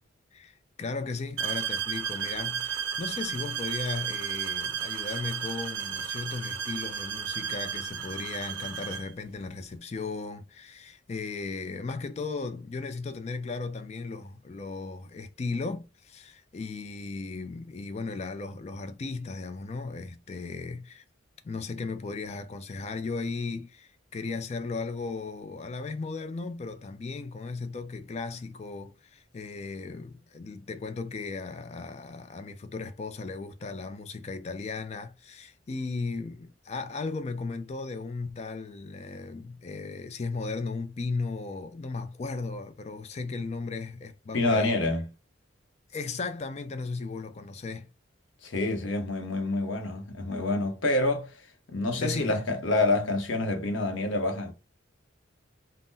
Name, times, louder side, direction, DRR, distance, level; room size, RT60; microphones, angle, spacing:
voice 1, 0.3-21.0 21.4-44.8 45.9-47.9 52.0-52.4, left 4 dB, 35° left, 0.3 m, -36 dB
sound 1, 1.4-9.1, right 8 dB, 70° right, 0.5 m, -33 dB
voice 2, 44.3-45.1 48.4-51.3 51.7-54.5, left 2 dB, 70° left, 0.7 m, -27 dB
2.6 x 2.0 x 3.6 m
head